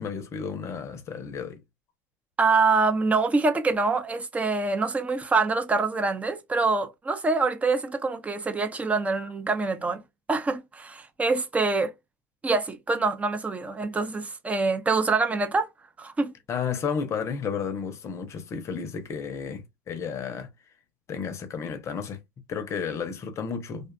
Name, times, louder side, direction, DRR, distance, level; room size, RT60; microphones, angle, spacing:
voice 1, 0.0-1.6 16.5-20.5 21.1-22.2 22.5-23.9, left 6 dB, 35° left, 0.7 m, -32 dB
voice 2, 2.4-10.0 10.3-11.9 12.4-15.7 16.0-16.3, right 3 dB, 15° right, 0.6 m, -25 dB
2.5 x 2.4 x 2.2 m
hypercardioid pair, 95°, 9 cm